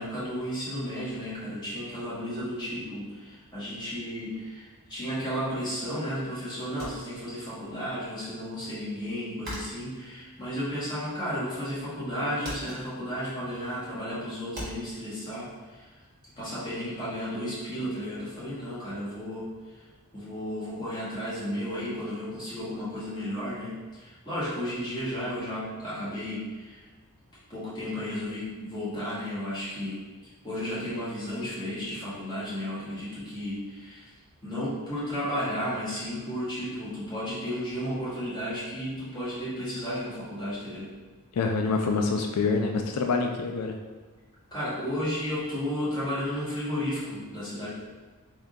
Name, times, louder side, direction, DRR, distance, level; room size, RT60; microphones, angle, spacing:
voice 1, 0.0-16.0 16.4-19.5 20.1-26.8 27.5-30.0 30.4-34.1 34.4-40.9 44.5-47.7, equal, 20° left, -10 dB, 1.5 m, -33 dB
sound 1, 6.8-7.8 8.1-11.4 11.7-12.1 12.4-15.0, equal, 45° right, 1.3 m, -41 dB
voice 2, 41.3-43.8, left 4 dB, 90° left, 3 dB, 0.4 m, -26 dB
3.6 x 2.6 x 3.7 m, 1.3 s
head